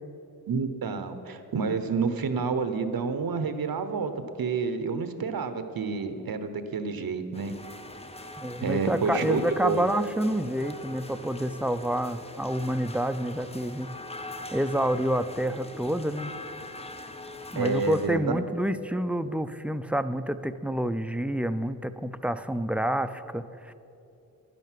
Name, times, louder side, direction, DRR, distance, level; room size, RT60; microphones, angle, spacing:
voice 1, 0.5-7.5 8.6-9.9 17.6-18.3, right 5 dB, 70° right, 10 dB, 1.0 m, -29 dB
sound 1, 7.3-18.1, left 2 dB, 15° left, 0.7 m, -42 dB
voice 2, 8.4-13.9 14.5-16.3 17.5-23.7, right 1 dB, 5° right, 10 dB, 0.3 m, -28 dB
11.0 x 10.5 x 7.6 m, 2.8 s
wide cardioid pair, 130°, 37 cm